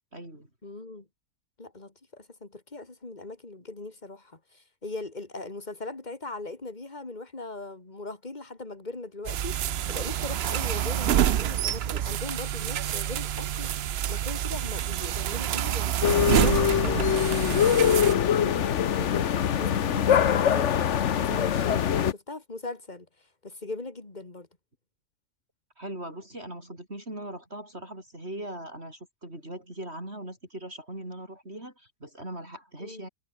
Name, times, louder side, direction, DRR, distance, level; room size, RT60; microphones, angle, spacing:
voice 1, 0.1-0.5 25.8-33.1, right 1 dB, 45° right, 8.0 m, -40 dB
voice 2, 0.6-1.1 1.6-15.9 16.3-17.1 17.4-19.3 19.6-20.8 21.1-24.5 32.8-33.1, left 2 dB, 30° left, 3.1 m, -40 dB
sound 1, 9.3-18.2, right 11 dB, 60° right, 0.7 m, -27 dB
sound 2, 16.0-22.1, left 9 dB, 55° left, 1.2 m, -23 dB
omnidirectional pair, 1.6 m